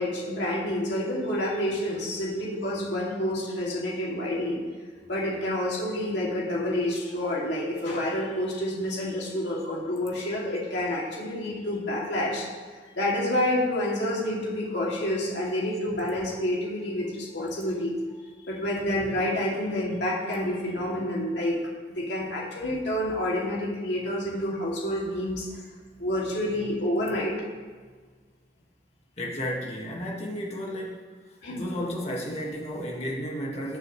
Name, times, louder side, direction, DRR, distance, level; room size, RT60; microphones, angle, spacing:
voice 1, 0.0-4.6 5.1-12.5 12.9-17.9 18.4-21.6 21.9-25.5 26.0-27.3 31.4-31.6, left 1 dB, 65° left, -5 dB, 2.8 m, -28 dB
voice 2, 29.2-31.0 31.5-33.8, equal, 35° left, -2 dB, 1.9 m, -33 dB
20.0 x 6.7 x 3.3 m, 1.5 s
head